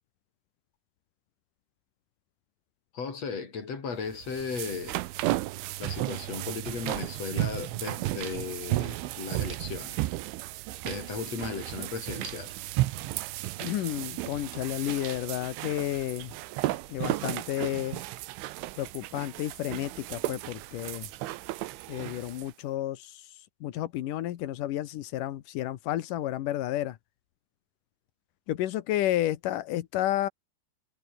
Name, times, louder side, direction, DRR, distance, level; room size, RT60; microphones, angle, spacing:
voice 1, 2.9-5.0 5.8-10.0 10.8-12.6, left 5 dB, 35° left, 5.0 m, -36 dB
sound 1, 4.1-22.5, right 17 dB, 85° right, 3.5 m, -34 dB
voice 2, 13.6-16.3 16.7-18.0 18.8-21.1 21.9-27.0 28.5-30.3, left 13 dB, 75° left, 2.0 m, -31 dB
omnidirectional pair, 5.4 m